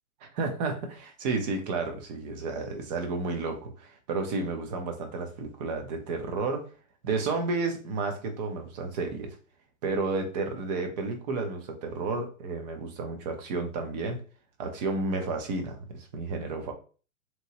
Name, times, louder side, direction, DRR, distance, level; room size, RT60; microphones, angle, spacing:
voice 1, 0.2-6.7 7.0-9.4 9.8-14.2 14.6-16.7, right 3 dB, 30° right, 4 dB, 0.6 m, -31 dB
2.9 x 2.7 x 2.8 m, 0.37 s
figure-of-eight pair, 120°, 44 cm